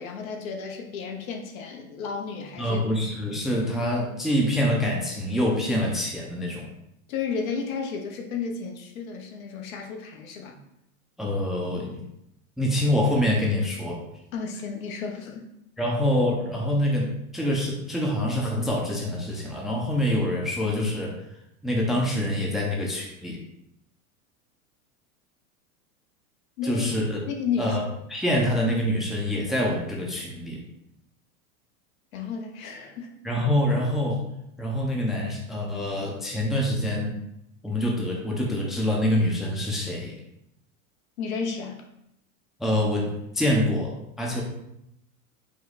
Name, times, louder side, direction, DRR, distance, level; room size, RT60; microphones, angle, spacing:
voice 1, 0.0-2.8 7.1-10.6 14.3-15.4 26.6-26.9 27.3-27.8 32.1-33.1 41.2-41.8, left 5 dB, 70° left, 2 dB, 1.0 m, -32 dB
voice 2, 2.6-6.7 11.2-12.0 12.6-14.0 15.8-21.2 21.6-23.4 26.6-27.3 27.6-30.6 33.2-34.2 34.6-37.2 37.6-40.2 42.6-44.4, left 1 dB, ahead, -2 dB, 0.5 m, -25 dB
5.1 x 2.2 x 4.0 m, 0.80 s
hypercardioid pair, 115°, 43 cm